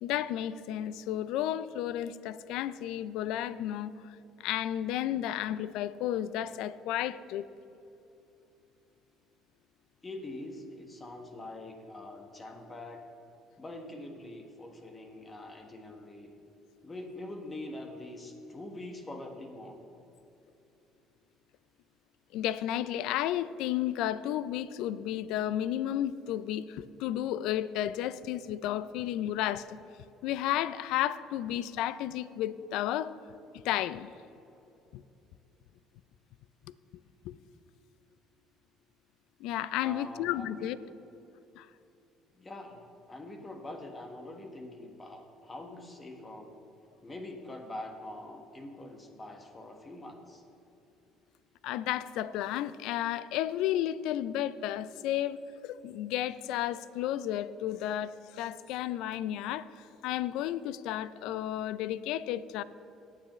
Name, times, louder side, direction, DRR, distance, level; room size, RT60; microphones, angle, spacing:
voice 1, 0.0-7.5 22.3-29.8 30.2-33.2 33.6-34.1 34.9-35.0 37.2-37.4 39.4-40.8 41.6-41.7 51.6-62.6, left 12 dB, 75° left, 17 dB, 0.3 m, -32 dB
voice 2, 10.0-13.1 13.6-16.3 16.8-19.8 39.8-40.7 42.3-46.6 47.0-50.4, left 1 dB, 25° left, 4 dB, 1.4 m, -44 dB
18.5 x 7.6 x 3.2 m, 2.9 s
supercardioid pair, 70°, 0 cm